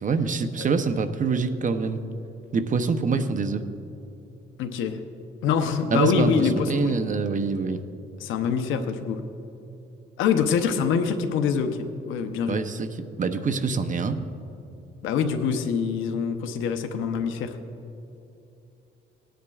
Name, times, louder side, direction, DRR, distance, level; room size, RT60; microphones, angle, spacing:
voice 1, 0.0-2.0 2.5-3.6 5.9-7.8 12.5-14.2, right 4 dB, 40° right, 10 dB, 0.7 m, -25 dB
voice 2, 4.6-5.0 5.4-6.9 8.2-9.2 10.2-11.7 12.1-12.6 15.0-17.5, left 6 dB, 90° left, 7 dB, 0.8 m, -25 dB
18.0 x 10.0 x 2.4 m, 2.8 s
cardioid pair, 90°, 20 cm